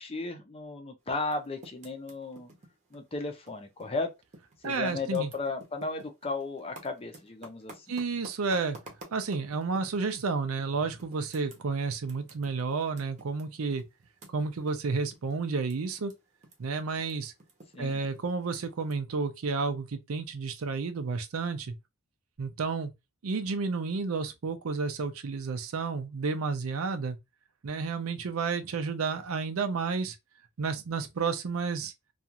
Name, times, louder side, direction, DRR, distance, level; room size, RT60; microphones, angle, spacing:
voice 1, 0.0-2.5 2.9-4.1 4.6-7.9 17.7-18.0, left 3 dB, 30° left, 0.5 m, -35 dB
Typing, 1.2-4.0 4.3-10.2 10.6-10.7 11.0-16.1 16.4-18.9, right 2 dB, 35° right, 0.8 m, -51 dB
voice 2, 4.6-5.3 7.9-8.8 9.1-13.8 14.3-16.1 16.6-17.3 17.8-21.8 22.4-22.9 23.2-27.2 27.6-30.2 30.6-31.9, right 4 dB, 85° right, 0.5 m, -31 dB
2.5 x 2.3 x 2.8 m
head